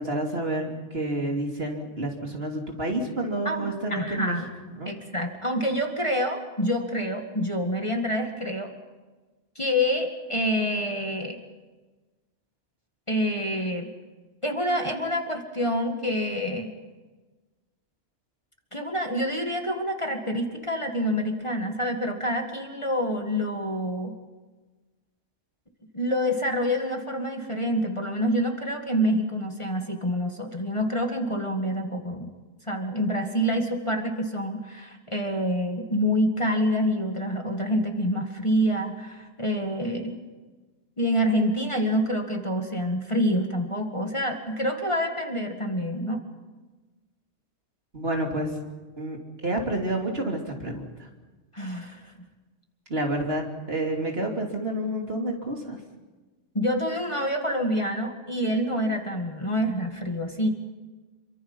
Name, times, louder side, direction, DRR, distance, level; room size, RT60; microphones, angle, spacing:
voice 1, 0.0-4.3 4.8-4.9 47.9-48.5 49.0-51.1 52.9-55.8, right 1 dB, 50° right, 1 dB, 3.3 m, -29 dB
voice 2, 3.5-4.5 4.9-8.7 9.6-11.4 13.1-13.9 14.4-16.7 18.7-24.1 25.9-32.3 32.7-40.2 41.0-46.2 51.5-52.0 56.5-60.5, equal, 25° left, 3 dB, 2.0 m, -27 dB
27.5 x 24.0 x 5.6 m, 1.3 s
omnidirectional pair, 1.3 m